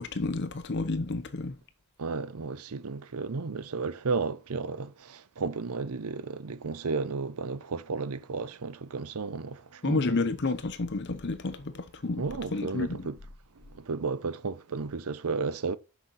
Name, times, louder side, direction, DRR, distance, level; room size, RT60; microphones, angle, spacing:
voice 1, 0.0-1.6 9.8-12.2 12.5-13.1, left 3 dB, 50° left, 0.7 m, -30 dB
voice 2, 2.0-10.1 12.2-13.2 13.7-15.8, right 4 dB, 85° right, 0.7 m, -33 dB
6.5 x 5.8 x 5.7 m
head